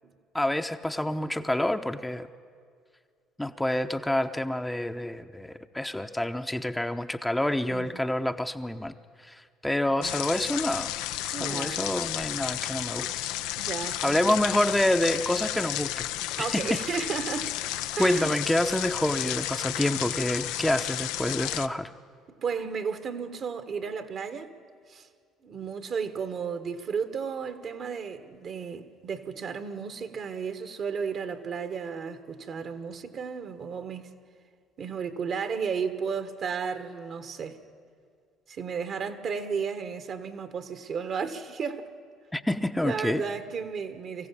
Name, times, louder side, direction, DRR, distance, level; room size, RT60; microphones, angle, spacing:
voice 1, 0.3-2.3 3.4-8.9 9.2-11.0 11.3-13.1 14.0-16.1 16.4-16.8 18.0-21.9 42.3-43.2, left 1 dB, 5° left, 0.8 m, -27 dB
sound 1, 10.0-21.7, left 14 dB, 75° left, 0.5 m, -32 dB
voice 2, 11.3-11.9 13.6-14.4 16.4-18.3 22.3-24.5 24.9-25.1 25.4-34.1 34.8-37.6 38.5-41.9 42.8-44.3, right 6 dB, 55° right, 1.6 m, -33 dB
23.5 x 15.5 x 8.7 m
hypercardioid pair, 60°, 0 cm